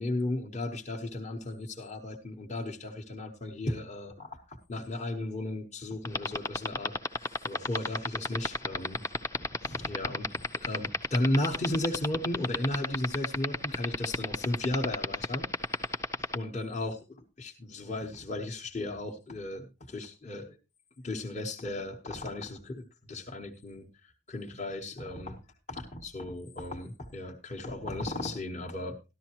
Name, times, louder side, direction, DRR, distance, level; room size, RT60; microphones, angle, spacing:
voice 1, 0.0-9.0 9.4-15.9 16.3-20.6 21.0-25.4 25.7-29.0, left 1 dB, 35° left, 1 dB, 1.0 m, -35 dB
sound 1, 6.0-16.4, left 2 dB, 15° left, 0.5 m, -29 dB
13.5 x 11.5 x 2.9 m, 0.28 s
head